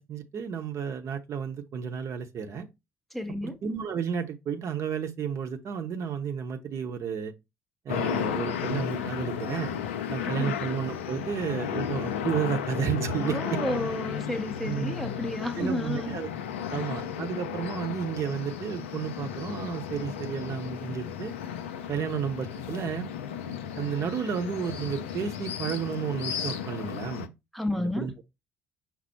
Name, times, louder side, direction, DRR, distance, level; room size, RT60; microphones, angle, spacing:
voice 1, 0.0-2.7 3.3-7.3 7.8-9.7 10.1-13.6 14.6-14.9 15.6-16.3 16.7-21.3 21.9-23.1 23.7-27.3 28.0-28.1, right 7 dB, 45° right, 0.7 m, -32 dB
voice 2, 3.1-3.6 10.2-10.6 13.2-16.1 16.7-16.9 27.5-28.1, left 1 dB, ahead, 0.5 m, -32 dB
sound 1, 7.9-27.3, left 8 dB, 75° left, 0.4 m, -34 dB
5.7 x 2.0 x 4.3 m
figure-of-eight pair, 50°, 7 cm